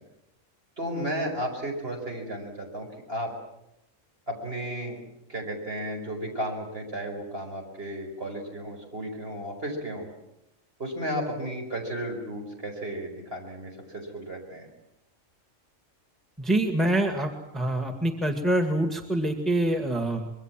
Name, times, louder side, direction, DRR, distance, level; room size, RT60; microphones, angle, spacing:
voice 1, 0.8-3.3 4.3-5.0 5.3-10.1 10.8-14.7, right 1 dB, 50° right, 2 dB, 5.6 m, -34 dB
voice 2, 16.4-20.3, right 1 dB, ahead, 4 dB, 1.9 m, -25 dB
25.5 x 22.5 x 7.5 m, 0.86 s
omnidirectional pair, 1.4 m